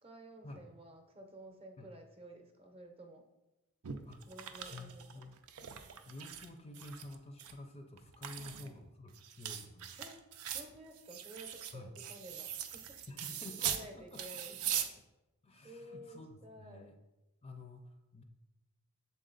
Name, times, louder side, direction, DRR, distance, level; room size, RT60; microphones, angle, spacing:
voice 1, 0.0-3.3 4.3-5.3 8.4-8.8 10.0-10.2 10.5-13.0 13.6-14.9 15.6-16.9, right 1 dB, 25° right, 4 dB, 0.7 m, -53 dB
sound 1, 3.8-6.5 6.7-7.5 8.0-13.9 14.1-14.9, right 9 dB, 90° right, 0.5 m, -41 dB
voice 2, 4.7-5.4 6.1-10.0 11.7-11.9 13.1-14.7 15.4-16.9 17.4-18.2, left 2 dB, 25° left, 5 dB, 0.5 m, -50 dB
7.1 x 4.0 x 3.9 m, 0.99 s
head